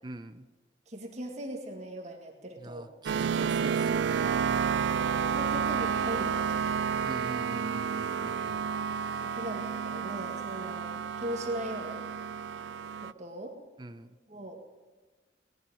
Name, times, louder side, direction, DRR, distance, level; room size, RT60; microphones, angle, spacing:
voice 1, 0.0-0.4 2.6-4.3 7.0-8.6 13.8-14.1, right 2 dB, 25° right, 11 dB, 0.6 m, -43 dB
voice 2, 0.9-2.9 5.0-7.0 9.2-12.0 13.0-13.6 14.3-14.6, right 1 dB, 40° right, 2 dB, 1.9 m, -39 dB
sound 1, 3.1-13.1, right 6 dB, 70° right, 0.3 m, -30 dB
18.0 x 11.0 x 5.0 m, 1.3 s
head